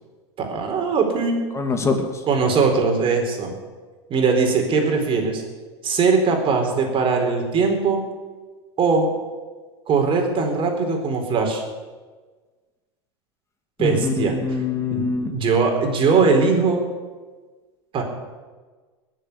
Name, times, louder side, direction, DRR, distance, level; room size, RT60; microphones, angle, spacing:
voice 1, 0.4-1.4 2.3-3.5 4.1-5.4 5.8-8.0 8.8-9.1 9.9-11.6 13.8-14.4 14.9-16.8 17.9-18.0, right 4 dB, 40° right, 3 dB, 4.1 m, -20 dB
voice 2, 1.5-2.2 13.8-15.3, left 4 dB, 20° left, 4 dB, 2.7 m, -24 dB
21.0 x 7.6 x 8.2 m, 1.4 s
hypercardioid pair, 100°, 14 cm